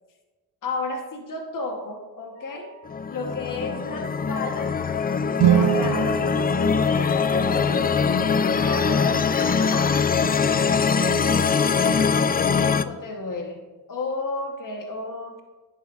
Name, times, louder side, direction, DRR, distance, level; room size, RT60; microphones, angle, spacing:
voice 1, 0.6-2.7 3.1-4.8 5.5-6.2 6.9-10.1 12.5-15.4, left 2 dB, 55° left, 3 dB, 1.2 m, -33 dB
Wind instrument woodwind instrument, 2.3-7.2, right 4 dB, 90° left, 2.6 m, -50 dB
sound 1, 2.9-12.8, left 5 dB, 25° left, 0.3 m, -22 dB
sound 2, 5.4-7.5, right 10 dB, 75° right, 0.5 m, -23 dB
11.0 x 8.1 x 2.5 m, 1.3 s
cardioid pair, 55°, 38 cm